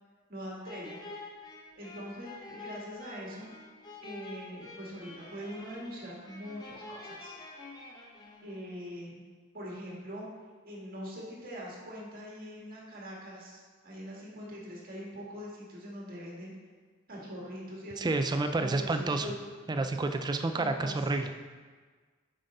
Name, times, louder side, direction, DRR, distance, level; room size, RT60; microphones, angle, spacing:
voice 1, 0.3-1.0 1.8-3.5 4.0-7.3 8.4-9.2 9.5-10.3 10.6-16.5 17.1-18.1 18.5-19.4 19.7-19.9 20.5-21.1, equal, 45° right, -4 dB, 1.8 m, -43 dB
sound 1, 0.6-8.7, left 2 dB, 20° left, 0.8 m, -47 dB
voice 2, 18.0-19.3 19.7-21.3, right 2 dB, 20° right, 7 dB, 0.4 m, -29 dB
7.5 x 5.3 x 4.1 m, 1.5 s
head